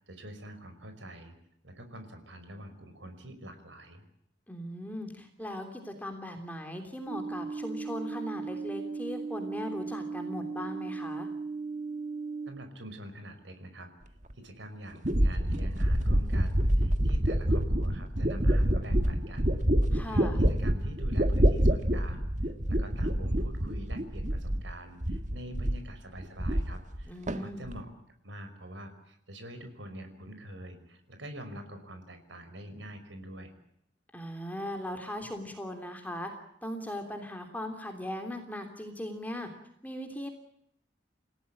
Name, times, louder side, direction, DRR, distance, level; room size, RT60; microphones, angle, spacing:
voice 1, 0.0-1.3 1.6-4.0 12.5-13.9 14.4-19.5 20.0-27.9 28.2-33.5, right 1 dB, 80° right, 8 dB, 5.4 m, -45 dB
voice 2, 4.5-11.3 19.9-20.4 27.0-27.6 34.1-36.3 36.6-39.5 39.8-40.3, left 1 dB, 10° left, 5 dB, 3.1 m, -39 dB
sound 1, 7.1-12.5, right 4 dB, 25° right, 6.1 m, -37 dB
sound 2, 14.3-14.4 15.0-24.7 25.0-25.9 26.2-27.0 27.3-27.8, equal, 40° right, 1.7 m, -27 dB
28.5 x 17.0 x 8.6 m, 0.76 s
head